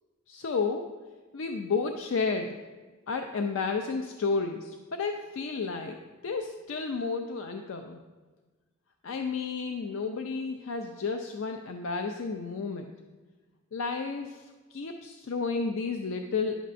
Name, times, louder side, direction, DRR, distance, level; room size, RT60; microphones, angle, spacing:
voice 1, 0.3-0.9 1.3-2.6 3.1-8.0 9.0-12.9 13.7-16.6, left 4 dB, 75° left, 5 dB, 0.4 m, -32 dB
10.0 x 6.5 x 2.5 m, 1.3 s
head